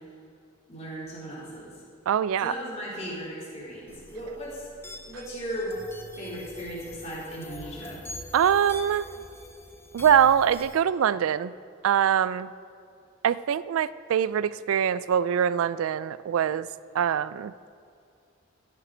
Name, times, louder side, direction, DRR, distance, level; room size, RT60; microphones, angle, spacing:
voice 1, 0.7-1.8 2.4-4.7 5.0-5.8 6.1-8.0, equal, 30° left, -6 dB, 3.3 m, -37 dB
voice 2, 2.1-2.5 8.3-9.1 9.9-11.5 11.8-12.5 13.2-16.7 16.9-17.5, right 8 dB, 85° right, 17 dB, 0.3 m, -23 dB
sound 1, 3.9-10.7, left 1 dB, 10° left, 0.7 m, -44 dB
14.5 x 7.5 x 5.0 m, 2.4 s
head